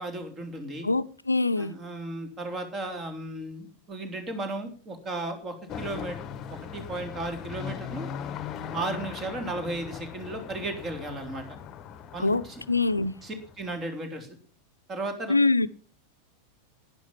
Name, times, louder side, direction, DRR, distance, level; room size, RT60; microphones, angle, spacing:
voice 1, 0.0-0.9 1.6-6.2 6.5-8.1 8.7-11.4 12.1-12.6 13.2-14.3 14.9-15.3, right 2 dB, 25° right, 3.6 m, -35 dB
voice 2, 0.8-1.8 12.2-13.1 15.3-15.7, left 3 dB, 80° left, 0.6 m, -24 dB
sound 1, 5.7-13.7, left 7 dB, 30° left, 1.2 m, -39 dB
11.5 x 10.5 x 7.3 m
figure-of-eight pair, 90°, 0 cm